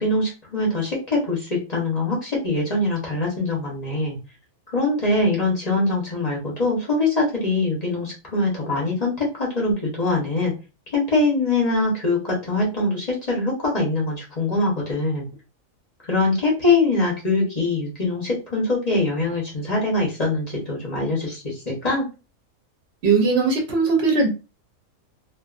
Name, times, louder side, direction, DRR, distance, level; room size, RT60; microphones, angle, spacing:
voice 1, 0.0-4.2 4.7-10.5 10.9-15.2 16.0-22.1, left 2 dB, 35° left, -4 dB, 0.7 m, -23 dB
voice 2, 23.0-24.3, right 4 dB, 60° right, 1 dB, 0.7 m, -19 dB
2.5 x 2.3 x 2.3 m, 0.30 s
omnidirectional pair, 1.5 m